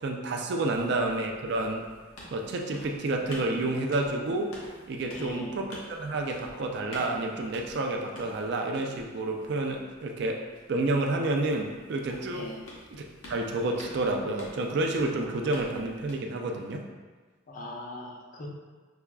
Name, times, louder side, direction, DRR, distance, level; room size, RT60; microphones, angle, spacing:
voice 1, 0.0-1.8 2.3-4.5 4.9-10.4 10.7-12.5 12.9-16.8, right 2 dB, 55° right, 2 dB, 0.4 m, -29 dB
sound 1, 0.7-16.1, left 1 dB, 90° left, 0.9 m, -49 dB
voice 2, 5.1-5.6 12.3-12.6 17.5-18.5, left 1 dB, 40° left, -1 dB, 0.4 m, -40 dB
5.7 x 2.3 x 2.2 m, 1.4 s
head